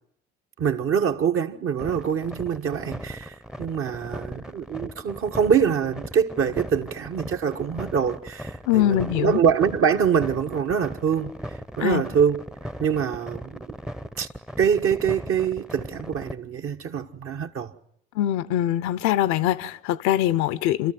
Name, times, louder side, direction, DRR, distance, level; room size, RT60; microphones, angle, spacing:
voice 1, 0.6-11.3 11.8-12.4 12.8-13.8 14.2-14.3 14.6-17.7, right 7 dB, 45° right, 1.4 m, -24 dB
sound 1, 1.8-16.3, equal, ahead, 0.8 m, -37 dB
voice 2, 8.7-9.4 11.8-12.0 18.1-20.9, left 12 dB, 65° left, 0.8 m, -23 dB
28.5 x 13.5 x 7.7 m
hypercardioid pair, 60°, 30 cm